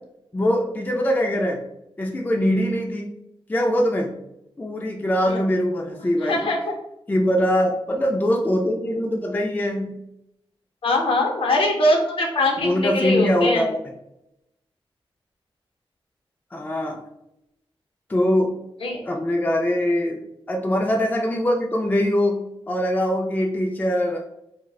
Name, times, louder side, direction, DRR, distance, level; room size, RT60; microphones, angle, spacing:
voice 1, 0.3-1.6 2.0-3.1 3.5-4.1 4.6-6.5 7.1-10.0 12.6-13.8 16.5-17.0 18.1-18.5 19.0-20.2 20.5-22.4 22.7-24.2, equal, 20° left, 1 dB, 0.3 m, -22 dB
voice 2, 6.2-6.7 10.8-13.7 18.8-19.0, left 1 dB, 65° left, 0 dB, 0.7 m, -22 dB
3.8 x 2.1 x 2.3 m, 0.83 s
wide cardioid pair, 115°, 10 cm